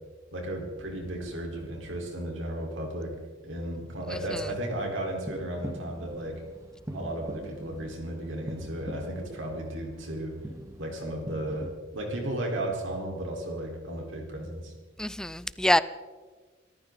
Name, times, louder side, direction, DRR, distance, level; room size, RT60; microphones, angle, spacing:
voice 1, 0.3-3.1 3.4-6.4 6.9-10.3 10.8-11.7 11.9-14.7, right 1 dB, 75° right, 0 dB, 4.3 m, -34 dB
voice 2, 4.1-4.4 15.0-15.8, left 1 dB, 5° left, 15 dB, 0.4 m, -26 dB
sound 1, 4.4-11.7, equal, 15° right, 1.3 m, -43 dB
26.0 x 14.0 x 4.0 m, 1.4 s
head